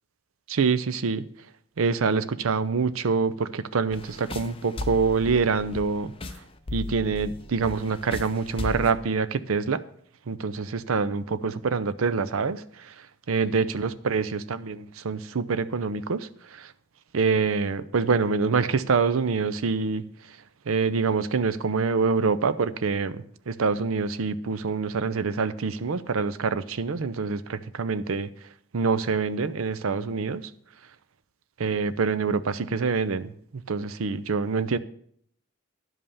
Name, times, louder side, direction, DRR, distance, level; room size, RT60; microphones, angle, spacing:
voice 1, 0.5-1.3 1.8-6.4 6.7-9.8 10.3-16.7 17.1-20.4 20.7-28.3 28.7-30.5 31.6-33.3 33.7-34.8, right 5 dB, 80° right, 0.6 m, -26 dB
sound 1, 3.9-8.9, left 3 dB, 25° left, 0.6 m, -36 dB
11.0 x 5.4 x 7.0 m
head